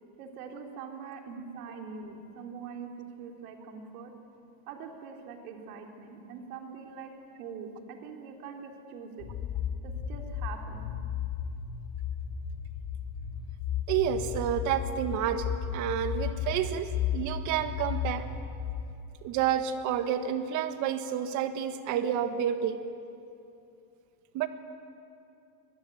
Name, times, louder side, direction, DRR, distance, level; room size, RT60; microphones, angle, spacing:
voice 1, 0.2-4.1 4.7-7.1 7.4-9.3 9.8-10.8, right 5 dB, 70° right, 2 dB, 3.9 m, -43 dB
sound 1, 9.2-18.8, left 8 dB, 40° left, 2.2 m, -34 dB
voice 2, 13.9-18.2 19.2-22.8 24.3-24.5, right 9 dB, 40° right, 9 dB, 1.6 m, -29 dB
23.5 x 21.0 x 9.2 m, 2.6 s
supercardioid pair, 160°, 45 cm